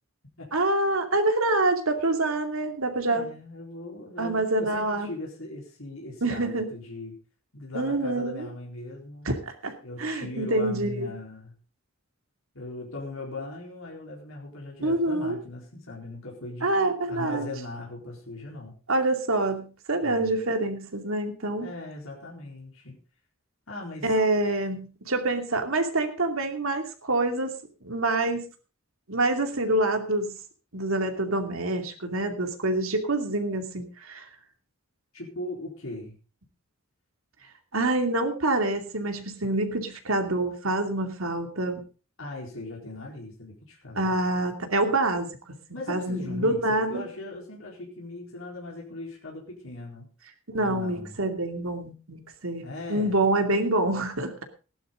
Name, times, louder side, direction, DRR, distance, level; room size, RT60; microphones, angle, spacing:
voice 1, 0.5-3.3 4.2-5.1 6.2-6.7 7.7-8.5 9.2-11.1 14.8-15.4 16.6-17.5 18.9-21.7 24.0-27.5 27.8-28.5 29.1-30.4 30.7-34.3 37.7-41.8 43.9-45.3 45.9-47.1 50.5-52.6 52.9-54.4, right 2 dB, 80° right, 5 dB, 2.6 m, -26 dB
voice 2, 3.0-7.2 7.5-9.3 9.8-11.5 12.5-16.7 17.1-18.8 20.0-20.4 21.6-23.0 23.7-24.1 35.1-36.2 42.2-44.2 45.7-50.1 50.5-51.2 52.6-53.2, left 2 dB, 75° left, -2 dB, 4.2 m, -39 dB
16.5 x 11.5 x 3.8 m, 0.35 s
head